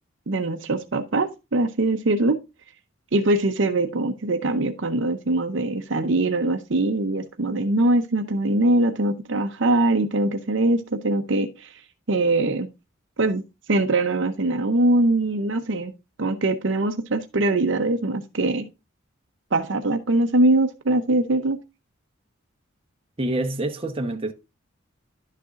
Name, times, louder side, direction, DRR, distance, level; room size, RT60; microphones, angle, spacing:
voice 1, 0.3-2.4 3.1-11.7 12.1-12.7 13.2-13.4 13.7-15.9 16.2-18.7 19.5-21.6, right 2 dB, 60° right, 0.7 m, -22 dB
voice 2, 23.2-24.3, right 1 dB, 25° right, 1.0 m, -26 dB
11.5 x 6.6 x 2.5 m
head